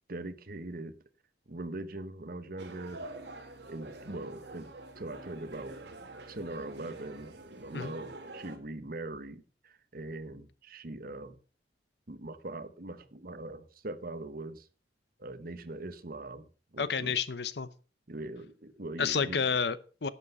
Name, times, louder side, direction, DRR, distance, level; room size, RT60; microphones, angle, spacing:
voice 1, 0.1-0.9 1.5-3.0 3.7-4.7 5.0-5.8 6.3-11.4 12.1-14.7 15.2-16.5 16.7-17.2 18.1-19.5, right 2 dB, 55° right, 1.1 m, -41 dB
sound 1, 2.6-8.6, right 2 dB, 75° right, 2.1 m, -46 dB
voice 2, 16.8-17.7 19.0-20.1, left 6 dB, 65° left, 0.8 m, -30 dB
11.5 x 8.1 x 5.5 m
head